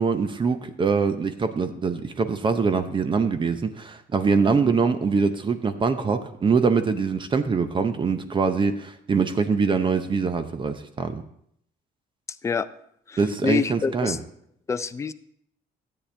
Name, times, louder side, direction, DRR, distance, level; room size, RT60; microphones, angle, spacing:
voice 1, 0.0-11.2 13.2-14.2, right 5 dB, 30° right, 9 dB, 0.7 m, -23 dB
voice 2, 13.1-14.2 14.7-15.1, left 5 dB, 15° left, 12 dB, 0.4 m, -26 dB
12.5 x 8.6 x 3.3 m, 0.70 s
cardioid pair, 110°, 17 cm